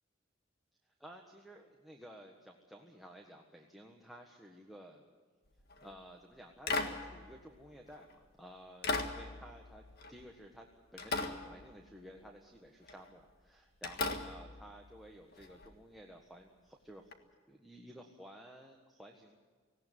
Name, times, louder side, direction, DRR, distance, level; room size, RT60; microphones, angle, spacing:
voice 1, 1.0-5.0 5.8-17.2 17.5-19.4, equal, ahead, 0 dB, 1.4 m, -54 dB
sound 1, 5.6-5.9 6.7-8.2 8.8-10.6 11.0-12.2 12.8-13.1 13.8-15.7 17.1-17.2, left 3 dB, 55° left, 1.8 m, -39 dB
18.5 x 17.5 x 9.3 m, 1.6 s
head